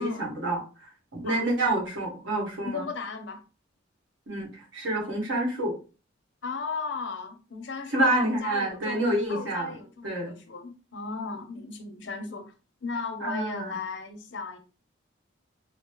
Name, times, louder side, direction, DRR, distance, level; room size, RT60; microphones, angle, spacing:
voice 1, 0.0-2.9 4.3-5.8 7.9-9.8 10.0-10.3 13.2-13.7, right 1 dB, 80° right, -2 dB, 1.3 m, -28 dB
voice 2, 2.6-3.4 6.4-12.4 12.8-14.6, left 4 dB, 70° left, 6 dB, 0.7 m, -36 dB
3.9 x 2.0 x 2.9 m, 0.35 s
head